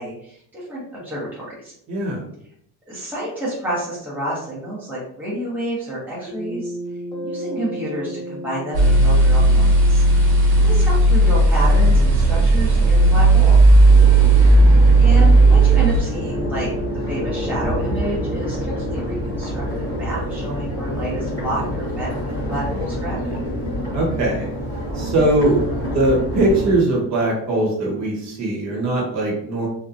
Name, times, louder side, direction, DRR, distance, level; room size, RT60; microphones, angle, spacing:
voice 1, 0.0-1.7 2.9-6.8 7.2-10.2 10.6-13.6 15.0-16.7 17.1-23.3, right 1 dB, 5° right, -7 dB, 0.9 m, -29 dB
voice 2, 1.9-2.2 10.5-10.7 14.2-14.9 23.9-24.5 24.9-25.6 25.9-29.7, right 1 dB, 45° right, -2 dB, 1.1 m, -21 dB
sound 1, 6.3-15.0 16.2-23.8, equal, 10° left, 0.5 m, -35 dB
sound 2, 8.7-16.0, right 2 dB, 80° right, 1.1 m, -13 dB
Crowd, 11.6-26.7, equal, 20° right, 1.2 m, -28 dB
2.8 x 2.3 x 2.5 m, 0.67 s
cardioid pair, 145°, 40 cm